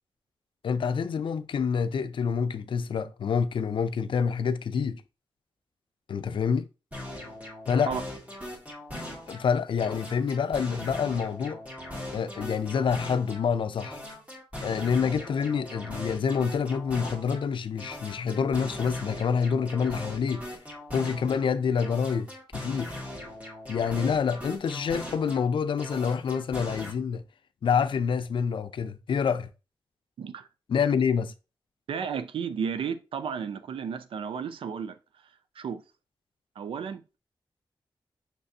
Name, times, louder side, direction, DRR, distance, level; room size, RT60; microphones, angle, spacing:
voice 1, 0.6-5.0 6.1-6.7 7.7-7.9 9.3-11.6 12.1-14.0 14.6-20.5 20.9-22.9 23.7-27.2 27.6-29.5 30.7-31.3, left 6 dB, 70° left, 0.4 m, -27 dB
sound 1, 6.9-9.5 9.8-13.5 13.8-17.4 17.8-21.4 21.8-25.5 25.8-26.9, left 1 dB, 15° right, 1.8 m, -40 dB
voice 2, 30.2-30.5 31.9-35.0 35.6-35.8 36.6-37.0, right 6 dB, 90° right, 0.4 m, -33 dB
6.0 x 3.2 x 2.7 m
cardioid pair, 75°, 9 cm